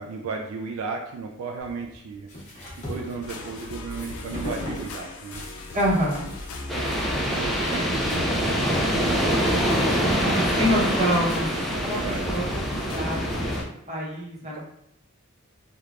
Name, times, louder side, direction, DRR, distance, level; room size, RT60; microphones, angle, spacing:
voice 1, 0.0-2.3 2.8-5.4 7.2-10.0 10.5-10.9 11.9-12.5 13.9-14.2 14.5-14.6, right 4 dB, 75° right, 2 dB, 0.3 m, -35 dB
sound 1, 1.6-8.7, left 1 dB, 35° left, 0.8 m, -41 dB
sound 2, 3.2-13.7, left 1 dB, 75° left, 0.4 m, -38 dB
voice 2, 5.7-6.3 10.0-12.0 12.2-13.4 13.9-14.6, equal, 35° right, -5 dB, 0.8 m, -27 dB
sound 3, 6.7-13.6, equal, ahead, 0.3 m, -25 dB
3.1 x 2.2 x 2.4 m, 0.76 s
head